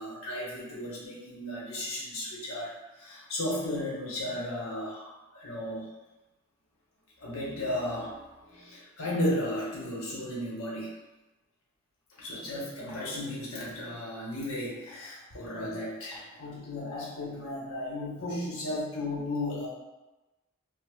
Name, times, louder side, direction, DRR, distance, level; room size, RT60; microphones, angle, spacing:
voice 1, 0.0-5.9 7.2-10.9 12.2-19.7, left 1 dB, 75° left, -5 dB, 1.0 m, -34 dB
4.6 x 2.1 x 2.3 m, 1.1 s
head